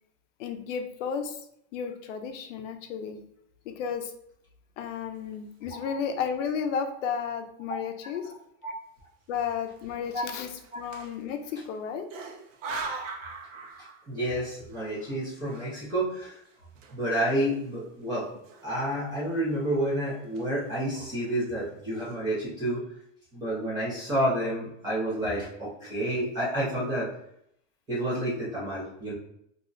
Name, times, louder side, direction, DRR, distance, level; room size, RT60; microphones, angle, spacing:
voice 1, 0.4-1.4 1.7-3.2 3.7-4.1 4.8-8.3 9.3-12.1, left 7 dB, 70° left, 6 dB, 0.5 m, -33 dB
sound 1, 5.6-6.2 6.7-6.8 7.1-7.8 8.2-8.4 9.4-11.7 12.1-14.2 14.5-17.4 17.7-17.8 18.3-19.1 19.4-19.8 20.1-20.7 21.3-21.4 21.7-22.1, right 3 dB, 70° right, 0.7 m, -42 dB
voice 2, 14.1-16.4 16.9-18.3 18.6-22.8 23.3-27.1 27.9-29.1, right 1 dB, 10° right, -8 dB, 0.4 m, -29 dB
2.4 x 2.0 x 3.7 m, 0.74 s
supercardioid pair, 170°, 39 cm